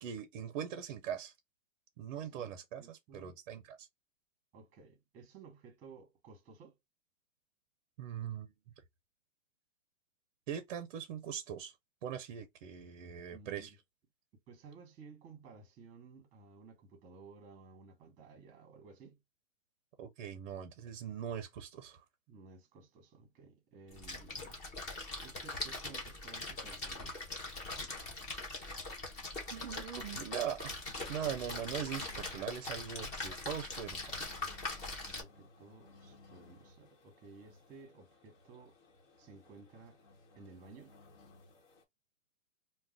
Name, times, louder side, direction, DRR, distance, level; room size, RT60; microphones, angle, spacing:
voice 1, 0.0-1.3 2.0-3.9 8.0-8.5 10.5-11.7 12.0-13.7 20.0-22.0 29.5-30.8 31.1-34.1, right 9 dB, 40° right, 0.5 m, -41 dB
voice 2, 2.2-2.5 2.8-3.4 4.5-6.7 13.3-13.8 14.5-19.2 22.3-24.6 25.2-27.1 34.8-38.8 39.2-40.0 40.3-40.9, right 4 dB, 20° right, 0.9 m, -56 dB
Splash splatter, 23.9-35.2, left 2 dB, 20° left, 0.6 m, -42 dB
sound 1, 30.8-41.8, left 2 dB, 60° left, 1.2 m, -61 dB
2.4 x 2.2 x 3.4 m
hypercardioid pair, 145°, 39 cm